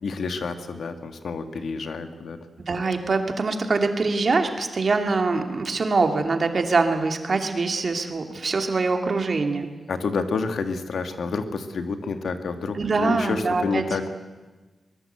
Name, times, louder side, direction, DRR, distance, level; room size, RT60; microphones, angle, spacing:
voice 1, 0.0-2.4 9.9-14.2, left 4 dB, 75° left, 7 dB, 2.0 m, -29 dB
voice 2, 2.7-9.7 12.7-13.8, right 3 dB, 50° right, 5 dB, 2.5 m, -23 dB
23.5 x 21.0 x 8.1 m, 1.2 s
wide cardioid pair, 110°, 0 cm